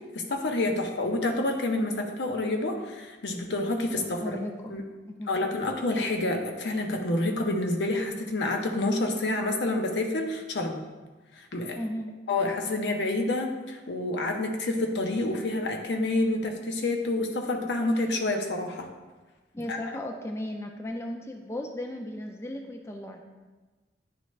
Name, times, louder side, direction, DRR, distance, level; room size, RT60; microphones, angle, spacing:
voice 1, 0.1-4.4 4.7-4.8 5.3-10.8 11.4-11.8 12.3-18.9 19.7-19.8, left 2 dB, 80° left, 3 dB, 0.7 m, -28 dB
voice 2, 4.0-4.5 5.1-5.3 11.8-12.1 19.5-23.2, left 1 dB, 15° left, 3 dB, 0.3 m, -36 dB
9.6 x 3.3 x 3.2 m, 1.3 s
head